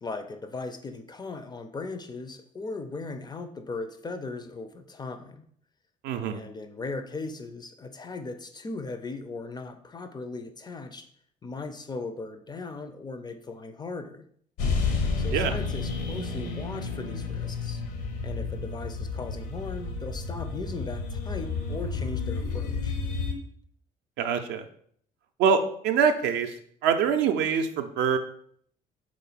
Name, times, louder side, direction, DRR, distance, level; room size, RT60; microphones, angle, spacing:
voice 1, 0.0-5.4 6.3-11.1 11.4-14.3 15.2-17.8 18.2-23.0, left 3 dB, 20° left, 9 dB, 0.4 m, -38 dB
voice 2, 6.0-6.4 15.3-15.5 24.2-24.6 25.4-26.5 26.8-28.2, right 6 dB, 55° right, 7 dB, 0.5 m, -24 dB
sound 1, 14.6-23.3, left 4 dB, 65° left, 0.8 m, -31 dB
3.8 x 3.1 x 4.0 m, 0.63 s
figure-of-eight pair, 50°, 21 cm